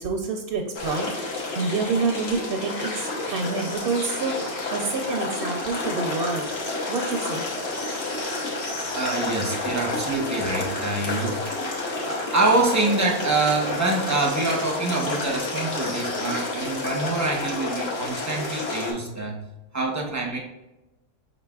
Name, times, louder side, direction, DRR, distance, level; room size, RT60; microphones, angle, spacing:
voice 1, 0.0-6.5 6.9-7.4, right 4 dB, 65° right, 2 dB, 0.7 m, -28 dB
sound 1, 0.7-18.9, left 2 dB, 60° left, 1.2 m, -30 dB
voice 2, 8.9-11.4 12.0-19.4 19.7-20.4, right 2 dB, 20° right, 0 dB, 0.5 m, -25 dB
5.1 x 3.9 x 2.3 m, 0.96 s
omnidirectional pair, 1.3 m